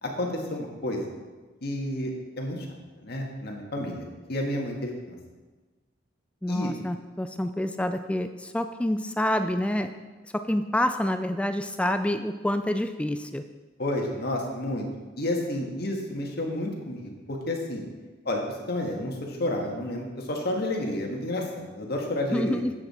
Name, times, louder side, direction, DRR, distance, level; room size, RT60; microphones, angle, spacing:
voice 1, 0.0-1.1 1.6-2.1 2.4-2.7 3.0-5.2 6.5-6.7 13.8-14.9 15.2-17.8 18.3-18.4 18.7-22.6, left 1 dB, 55° left, 1 dB, 1.7 m, -30 dB
voice 2, 6.4-9.9 10.5-13.4 22.3-22.7, left 1 dB, 5° left, 9 dB, 0.3 m, -27 dB
10.5 x 8.0 x 4.3 m, 1.3 s
head